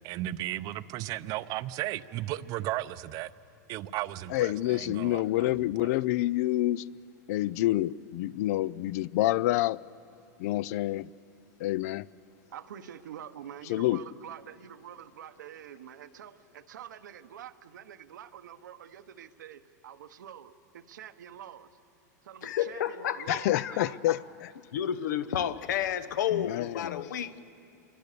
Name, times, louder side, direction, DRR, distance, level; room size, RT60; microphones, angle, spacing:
voice 1, 0.0-3.3 3.7-5.9, right 15 dB, 40° right, 0.7 m, -35 dB
voice 2, 4.3-6.8 7.3-9.8 10.4-11.1 11.6-12.1 13.7-14.0 23.3-24.5 26.3-27.1, left 16 dB, 60° left, 0.5 m, -28 dB
voice 3, 12.5-21.7 22.2-24.0, right 10 dB, 90° right, 1.2 m, -46 dB
voice 4, 22.4-24.2 24.7-27.4, left 10 dB, 80° left, 1.1 m, -31 dB
27.5 x 23.0 x 6.9 m
supercardioid pair, 135°, 10 cm